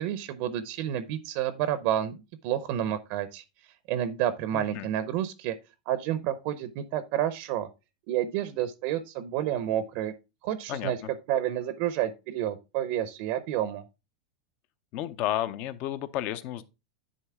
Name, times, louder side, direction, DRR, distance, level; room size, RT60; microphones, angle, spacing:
voice 1, 0.0-3.4 3.9-5.5 5.9-7.7 8.1-10.1 10.4-11.0 11.3-13.8, right 11 dB, 50° right, 0.6 m, -30 dB
voice 2, 4.5-4.9 10.7-11.1 14.9-16.6, left 13 dB, 45° left, 0.6 m, -32 dB
10.0 x 4.0 x 3.5 m
supercardioid pair, 140°, 4 cm